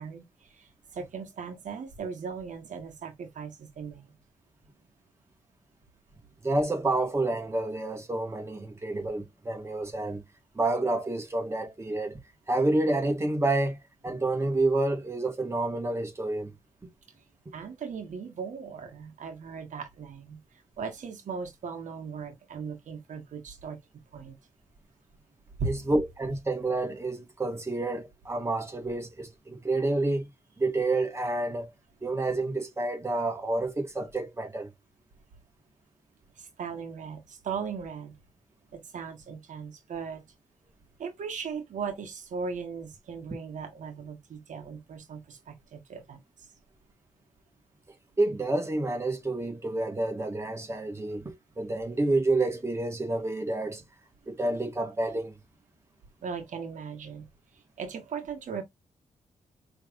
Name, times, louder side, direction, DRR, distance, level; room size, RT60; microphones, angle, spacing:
voice 1, 0.0-4.1 17.2-17.3 17.5-23.8 24.1-24.4 25.6-25.7 36.4-38.2 38.7-40.2 41.0-46.5 56.2-57.3 57.5-58.6, right 5 dB, 75° right, 1.3 m, -38 dB
voice 2, 6.4-10.2 10.5-12.2 12.5-16.5 25.6-30.3 30.6-31.7 32.0-34.7 48.2-53.8 54.3-55.3, right 2 dB, 20° right, 1.6 m, -29 dB
5.7 x 3.3 x 2.5 m
wide cardioid pair, 135°, 13 cm